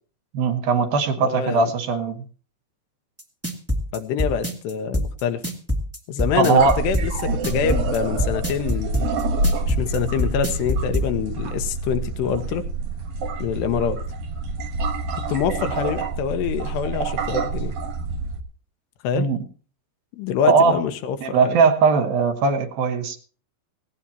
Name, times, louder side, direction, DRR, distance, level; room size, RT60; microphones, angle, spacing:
voice 1, 0.3-2.2 6.4-6.8 19.1-19.4 20.4-20.8 21.2-23.2, right 5 dB, 65° right, 5 dB, 3.0 m, -19 dB
voice 2, 1.2-1.7 3.9-5.4 6.1-9.1 9.7-12.6 13.4-14.0 15.3-17.7 19.0-19.3 20.1-21.6, left 8 dB, 80° left, 9 dB, 3.1 m, -25 dB
sound 1, 3.2-11.1, equal, 10° right, 0.7 m, -24 dB
sound 2, 6.6-18.4, right 3 dB, 80° right, 1.4 m, -27 dB
18.5 x 17.5 x 2.9 m, 0.40 s
omnidirectional pair, 5.0 m